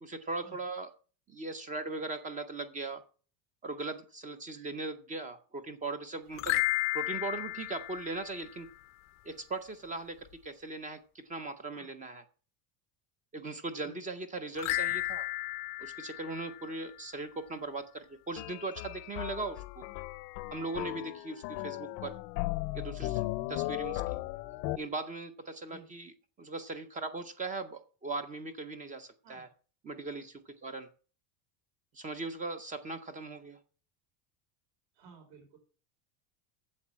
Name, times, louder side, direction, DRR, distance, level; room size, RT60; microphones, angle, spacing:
voice 1, 0.0-0.9 1.3-3.0 3.6-6.6 6.9-8.7 9.2-12.2 13.3-15.3 15.8-19.9 20.5-22.2 22.7-23.2 23.5-24.2 24.4-26.1 26.4-29.5 29.8-30.9 31.9-33.6, right 3 dB, 15° right, 10 dB, 0.5 m, -39 dB
sound 1, 6.3-8.8 14.6-17.2, left 20 dB, 35° left, 0.5 m, -34 dB
sound 2, 18.4-24.8, left 19 dB, 80° left, 0.7 m, -37 dB
voice 2, 34.9-35.6, right 5 dB, 60° right, 4 dB, 4.3 m, -55 dB
8.4 x 7.7 x 7.2 m, 0.39 s
cardioid pair, 165°, 50 cm